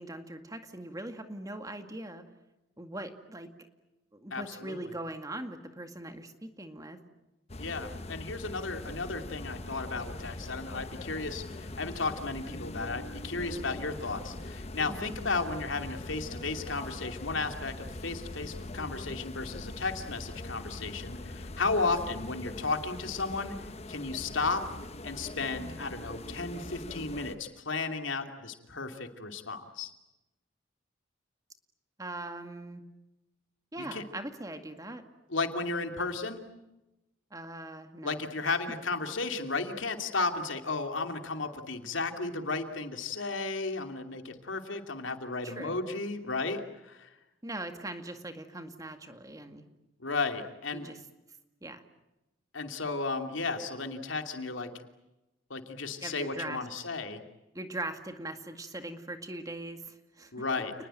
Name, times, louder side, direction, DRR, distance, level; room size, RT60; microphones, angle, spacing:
voice 1, 0.0-2.2 2.8-3.5 4.1-7.0 14.9-15.2 32.0-32.8 33.7-35.0 36.0-36.1 37.3-38.6 45.4-45.8 47.4-49.6 50.7-51.0 51.6-51.8 56.0-56.6 57.5-60.4, right 1 dB, 20° right, 7 dB, 2.0 m, -41 dB
voice 2, 4.3-4.9 7.6-24.6 25.0-29.9 33.8-34.0 35.3-36.4 38.0-47.1 50.0-50.9 52.5-54.7 55.5-57.2 60.3-60.7, left 3 dB, 80° left, 6 dB, 2.8 m, -34 dB
sound 1, 7.5-27.4, left 2 dB, 35° left, 1.1 m, -42 dB
30.0 x 20.5 x 9.1 m, 0.98 s
head